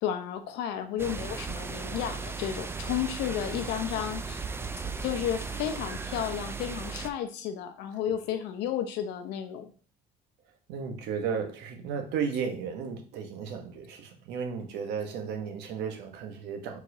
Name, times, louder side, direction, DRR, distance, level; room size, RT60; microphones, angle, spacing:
voice 1, 0.0-4.4 5.0-9.7, left 9 dB, 90° left, 0.7 m, -32 dB
sound 1, 1.0-7.1, right 4 dB, 15° right, 0.4 m, -36 dB
voice 2, 10.7-16.8, right 6 dB, 85° right, 1.0 m, -34 dB
4.7 x 4.1 x 2.7 m
cardioid pair, 110°, 17 cm